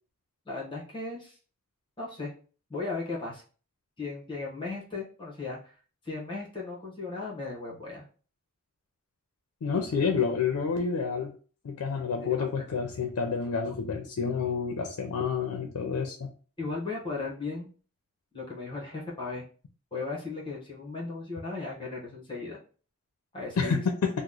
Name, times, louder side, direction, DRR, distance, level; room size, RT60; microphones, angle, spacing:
voice 1, 0.4-1.4 2.0-2.3 2.7-3.4 4.0-5.7 6.0-8.1 12.2-12.6 16.6-17.7 18.3-19.4 19.9-22.6 23.3-23.8, left 3 dB, 25° left, -4 dB, 0.9 m, -36 dB
voice 2, 9.6-11.3 11.6-16.3 23.6-24.1, left 5 dB, 85° left, 4 dB, 0.4 m, -29 dB
2.9 x 2.0 x 3.6 m, 0.40 s
head